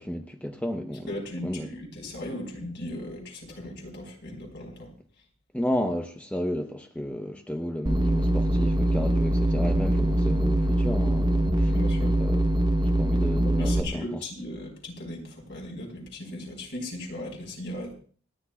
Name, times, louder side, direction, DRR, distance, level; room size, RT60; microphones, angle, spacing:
voice 1, 0.0-1.1 1.4-1.7 5.5-11.7 12.2-12.4 12.8-14.2, equal, 5° left, 4 dB, 0.7 m, -32 dB
voice 2, 1.1-4.9 11.7-12.1 13.6-17.9, left 1 dB, 55° left, 1 dB, 4.2 m, -37 dB
sound 1, 7.9-13.8, right 1 dB, 20° right, 0.9 m, -23 dB
27.5 x 10.5 x 2.3 m, 0.42 s
head